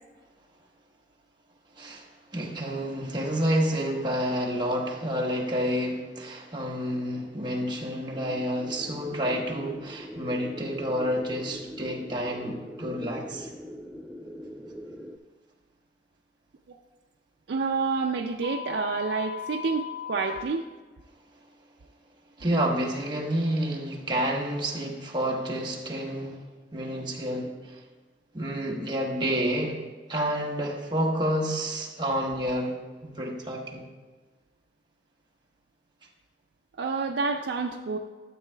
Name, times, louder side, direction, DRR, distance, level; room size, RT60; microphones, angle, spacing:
voice 1, 2.3-13.5 22.4-26.4 26.7-27.8 28.3-29.8 30.1-33.8, equal, 25° right, -2 dB, 1.2 m, -29 dB
sound 1, 8.6-15.2, equal, 5° right, 0.3 m, -41 dB
voice 2, 17.5-20.6 36.8-38.0, right 4 dB, 80° right, 2 dB, 0.4 m, -28 dB
sound 2, 18.4-20.4, left 10 dB, 30° left, 1.1 m, -37 dB
12.5 x 8.2 x 2.2 m, 1.4 s
head